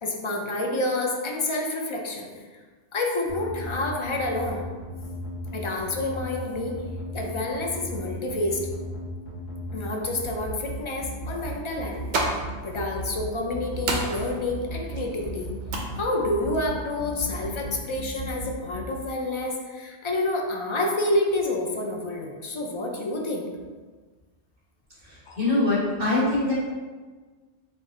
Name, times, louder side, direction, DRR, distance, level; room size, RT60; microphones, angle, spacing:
voice 1, 0.0-2.4 2.9-4.6 5.5-6.8 7.1-8.6 9.7-12.0 12.6-15.5 15.9-23.5 25.3-25.4, left 2 dB, 45° left, 0 dB, 0.4 m, -28 dB
sound 1, 3.3-18.8, right 1 dB, 85° left, 1.6 m, -35 dB
sound 2, 11.8-17.8, right 2 dB, 75° right, 1.0 m, -34 dB
voice 2, 25.0-26.5, left 2 dB, 50° right, -8 dB, 1.9 m, -24 dB
5.0 x 2.6 x 3.8 m, 1.4 s
omnidirectional pair, 1.2 m